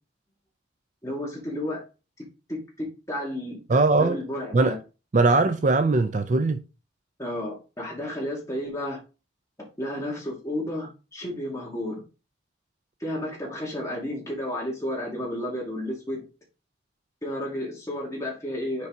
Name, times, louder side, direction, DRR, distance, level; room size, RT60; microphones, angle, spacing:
voice 1, 1.0-1.8 2.5-4.8 7.2-9.0 9.8-12.0 13.0-16.3 17.2-18.9, left 1 dB, 15° left, 2.3 m, -32 dB
voice 2, 3.7-4.2 4.5-4.7 5.1-6.6, right 3 dB, 40° right, 0.4 m, -20 dB
5.4 x 4.7 x 3.8 m
head